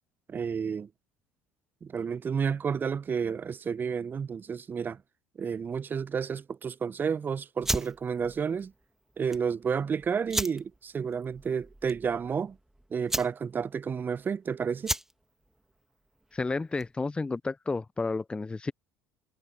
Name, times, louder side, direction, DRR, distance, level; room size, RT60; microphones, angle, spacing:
voice 1, 0.3-0.9 1.8-5.0 5.4-8.7 9.2-12.6 12.9-14.9, right 6 dB, 30° right, 1.1 m, -31 dB
sound 1, 7.6-17.1, right 1 dB, 5° right, 1.9 m, -37 dB
voice 2, 16.3-18.7, left 3 dB, 15° left, 0.9 m, -31 dB
figure-of-eight pair, 65°, 7 cm